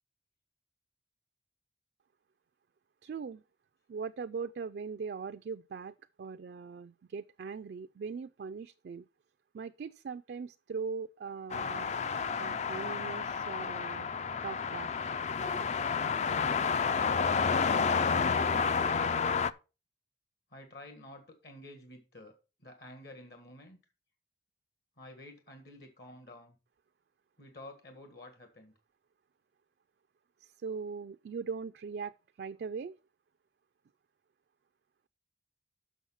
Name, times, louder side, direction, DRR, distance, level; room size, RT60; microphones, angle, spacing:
voice 1, 3.0-3.4 3.9-9.1 9.5-11.9 12.4-14.1 14.4-14.9 30.4-33.0, right 5 dB, 60° right, 0.3 m, -40 dB
sound 1, 11.5-19.5, left 5 dB, 40° left, 0.4 m, -30 dB
voice 2, 18.8-19.4 20.5-22.3 22.6-23.8 25.0-26.6 27.4-28.7, left 1 dB, 60° left, 1.6 m, -50 dB
7.1 x 6.2 x 5.6 m
head